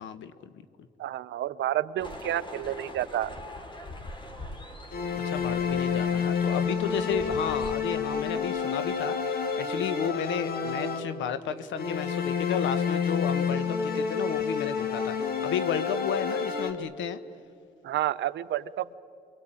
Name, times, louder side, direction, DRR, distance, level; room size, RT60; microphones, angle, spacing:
voice 1, 0.0-0.9 5.1-17.2, left 8 dB, 80° left, 12 dB, 1.3 m, -33 dB
voice 2, 1.0-3.4 17.8-18.9, right 12 dB, 75° right, 13 dB, 0.8 m, -30 dB
sound 1, 2.0-7.8, left 1 dB, 25° left, 2.9 m, -42 dB
sound 2, 4.9-11.4 11.8-16.7, left 6 dB, 50° left, 2.4 m, -29 dB
28.5 x 23.0 x 9.1 m, 2.6 s
cardioid pair, 75°, 19 cm